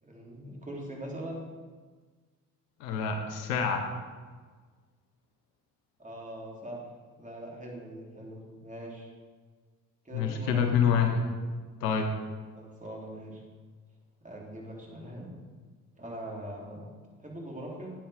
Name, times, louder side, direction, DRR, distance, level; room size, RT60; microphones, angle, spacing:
voice 1, 0.0-1.5 6.0-6.8 7.2-9.1 10.0-10.6 12.5-13.4 14.2-15.4 16.0-16.8 17.2-17.9, right 1 dB, 15° right, -3 dB, 3.4 m, -41 dB
voice 2, 2.8-3.9 10.1-11.2 11.8-12.1, left 7 dB, 75° left, 5 dB, 1.2 m, -26 dB
8.8 x 8.7 x 5.1 m, 1.5 s
hypercardioid pair, 50°, 48 cm